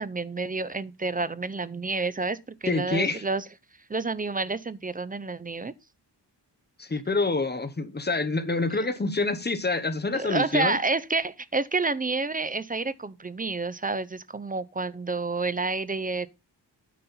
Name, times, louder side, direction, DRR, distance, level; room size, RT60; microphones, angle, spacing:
voice 1, 0.0-3.4 3.9-5.7 10.1-16.3, right 3 dB, 20° right, 0.4 m, -29 dB
voice 2, 2.7-3.2 6.8-10.8, left 3 dB, 25° left, 0.9 m, -27 dB
9.3 x 4.2 x 5.4 m
wide cardioid pair, 145°, 42 cm